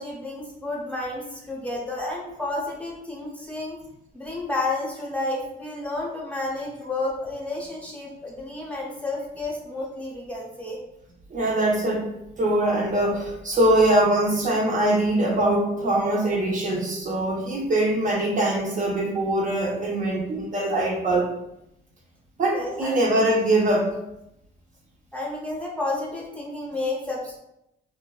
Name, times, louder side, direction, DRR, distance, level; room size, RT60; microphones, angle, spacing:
voice 1, 0.0-3.8 4.1-10.8 22.5-23.1 25.1-27.4, left 2 dB, 5° left, -4 dB, 0.7 m, -31 dB
voice 2, 11.3-12.1 12.4-21.3 22.4-23.9, right 1 dB, 40° right, -3 dB, 0.6 m, -22 dB
2.6 x 2.1 x 2.3 m, 0.84 s
cardioid pair, 90°, 20 cm